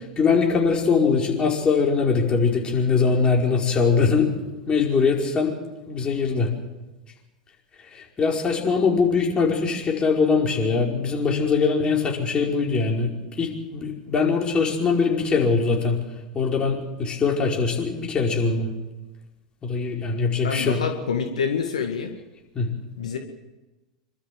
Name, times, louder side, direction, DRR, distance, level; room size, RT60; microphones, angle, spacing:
voice 1, 0.2-4.3 4.7-5.5 5.9-6.5 7.9-16.0 16.3-18.7 19.6-20.8 22.5-22.7, left 5 dB, 25° left, 0 dB, 5.0 m, -22 dB
voice 2, 20.4-22.1 23.0-23.2, left 6 dB, 80° left, 5 dB, 1.9 m, -26 dB
26.5 x 13.0 x 7.6 m, 1.1 s
hypercardioid pair, 90°, 4 cm